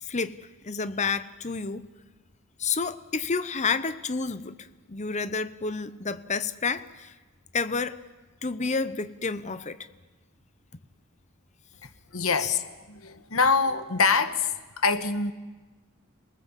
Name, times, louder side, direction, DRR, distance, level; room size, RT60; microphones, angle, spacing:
voice 1, 0.0-1.9 2.6-7.1 7.5-8.0 8.4-9.8 12.4-12.6, left 4 dB, 35° left, 13 dB, 0.9 m, -30 dB
voice 2, 12.1-15.3, left 4 dB, 75° left, 11 dB, 1.5 m, -25 dB
27.5 x 19.5 x 7.5 m, 1.3 s
head